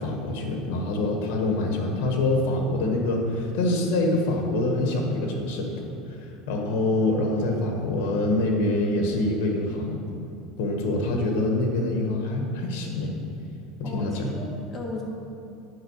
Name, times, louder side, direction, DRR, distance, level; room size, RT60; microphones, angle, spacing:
voice 1, 0.0-5.8 6.2-10.0 10.6-13.1 13.8-14.3, left 2 dB, 80° left, 2 dB, 1.5 m, -25 dB
voice 2, 13.8-15.0, left 2 dB, 25° left, -1 dB, 1.3 m, -36 dB
10.5 x 4.8 x 6.4 m, 2.6 s
cardioid pair, 165°, 0 cm